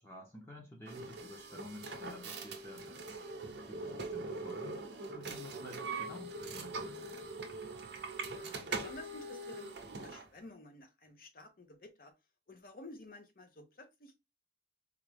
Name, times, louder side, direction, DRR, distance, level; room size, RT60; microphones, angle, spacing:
voice 1, 0.0-2.9 3.7-4.8 5.1-6.9, left 1 dB, 15° left, 0.7 m, -51 dB
sound 1, 0.9-10.3, right 3 dB, 65° right, 0.7 m, -42 dB
voice 2, 8.3-12.1 12.5-14.1, left 2 dB, 50° left, 0.8 m, -52 dB
3.7 x 2.3 x 3.2 m
head